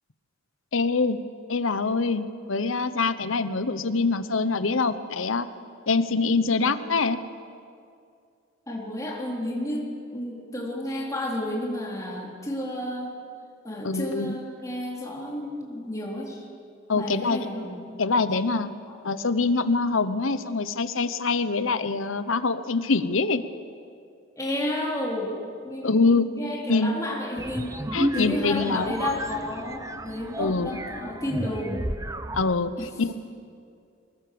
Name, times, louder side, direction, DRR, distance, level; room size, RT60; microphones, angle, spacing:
voice 1, 0.7-1.2 1.5-5.5 5.9-7.2 13.8-14.3 16.9-17.4 18.0-18.7 19.0-23.4 25.8-26.3 26.7-26.9 27.9-28.9 30.4-30.8 32.3-32.7 33.0-33.1, left 4 dB, 75° left, 12 dB, 1.0 m, -24 dB
voice 2, 8.7-13.2 13.6-16.5 16.9-17.9 18.9-19.0 24.4-25.4 25.6-27.8 28.1-31.9 32.8-32.9, left 1 dB, 15° left, -3 dB, 4.0 m, -31 dB
sound 1, 27.4-32.5, right 1 dB, 15° right, 0.8 m, -32 dB
24.5 x 20.5 x 7.0 m, 2.4 s
head